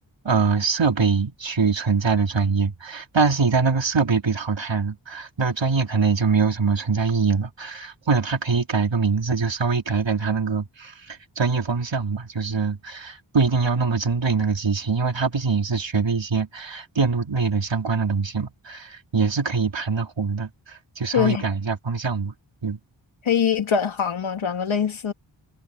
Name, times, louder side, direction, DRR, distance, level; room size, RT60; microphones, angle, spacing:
voice 1, 0.2-22.3 22.6-22.8, right 5 dB, 70° right, 3.4 m, -23 dB
voice 2, 23.3-25.1, left 7 dB, 85° left, 2.0 m, -23 dB
cardioid pair, 45°, 47 cm